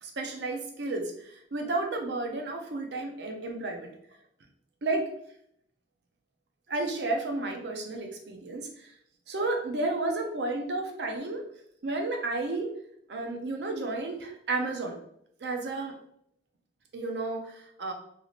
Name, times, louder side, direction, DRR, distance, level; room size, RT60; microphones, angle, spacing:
voice 1, 0.0-3.9 4.8-5.1 6.7-8.9 9.3-11.4 11.8-12.7 13.1-15.0 15.4-15.9 16.9-17.9, right 2 dB, 65° right, 3 dB, 0.5 m, -32 dB
3.3 x 2.7 x 2.4 m, 0.71 s
head